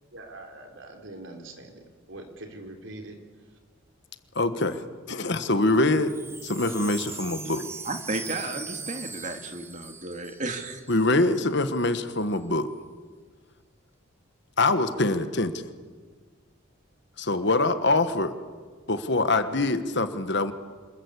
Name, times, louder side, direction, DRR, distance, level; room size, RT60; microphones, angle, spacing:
voice 1, 0.1-3.2, right 2 dB, 60° right, 4 dB, 3.7 m, -43 dB
voice 2, 4.3-6.2 6.4-7.7 10.9-12.7 14.6-15.6 17.2-18.3 18.9-20.5, left 2 dB, 55° left, 10 dB, 1.5 m, -24 dB
Wind chime, 5.8-11.1 11.3-11.4 11.6-12.1, right 4 dB, 10° right, 0.9 m, -40 dB
voice 3, 7.8-10.8, right 2 dB, 35° right, 6 dB, 2.3 m, -33 dB
27.0 x 21.5 x 8.3 m, 1.5 s
head